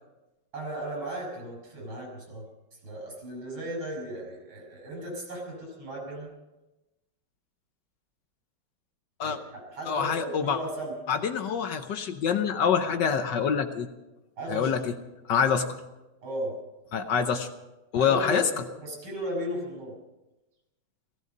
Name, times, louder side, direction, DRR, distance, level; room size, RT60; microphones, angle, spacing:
voice 1, 0.5-2.5 2.8-6.3 9.2-11.0 14.4-14.7 16.2-16.5 18.0-19.9, right 1 dB, 75° right, 0 dB, 6.5 m, -36 dB
voice 2, 9.9-10.6 11.1-13.9 14.5-14.9 15.3-15.8 16.9-17.5 17.9-18.6, left 7 dB, 65° left, 8 dB, 1.3 m, -26 dB
16.5 x 16.0 x 5.3 m, 1.0 s
omnidirectional pair, 2.3 m